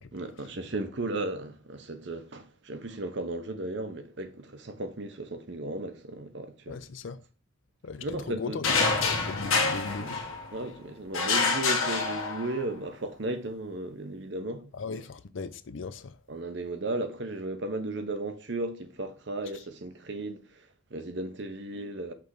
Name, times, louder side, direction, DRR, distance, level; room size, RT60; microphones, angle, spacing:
voice 1, 0.1-6.8 8.0-8.6 10.0-10.1 10.5-14.7 16.3-22.1, right 2 dB, 60° right, 0.8 m, -35 dB
voice 2, 6.7-7.2 7.8-8.7 9.0-10.4 14.7-16.2, left 4 dB, 70° left, 0.5 m, -38 dB
sound 1, 8.6-10.6 11.1-12.7, left 4 dB, 90° left, 1.4 m, -27 dB
6.0 x 3.4 x 4.7 m
head